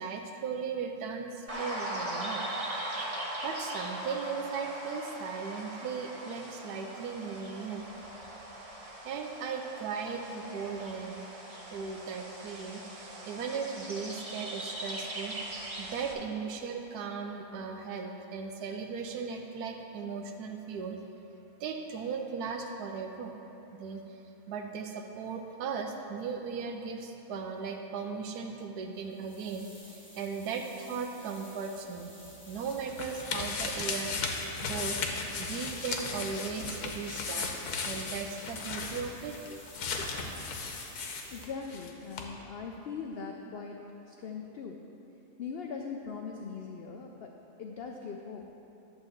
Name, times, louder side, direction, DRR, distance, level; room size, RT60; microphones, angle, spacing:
voice 1, 0.0-2.4 3.0-3.1 3.4-7.8 9.0-11.2 11.7-21.0 21.6-23.3 23.8-24.0 24.5-32.1 32.5-34.3 34.6-35.0 35.4-37.5 37.9-39.4, right 5 dB, 85° right, 3 dB, 1.2 m, -37 dB
sound 1, 1.5-16.1, right 1 dB, 30° right, 0.7 m, -40 dB
sound 2, 29.0-41.5, left 1 dB, 10° left, 1.1 m, -54 dB
sound 3, 32.3-41.9 42.2-42.3, left 4 dB, 90° left, 1.4 m, -36 dB
voice 2, 41.1-43.8 44.0-44.8 45.4-47.3 47.6-48.4, left 5 dB, 65° left, 1 dB, 0.6 m, -40 dB
11.0 x 3.9 x 7.1 m, 3.0 s
omnidirectional pair, 1.6 m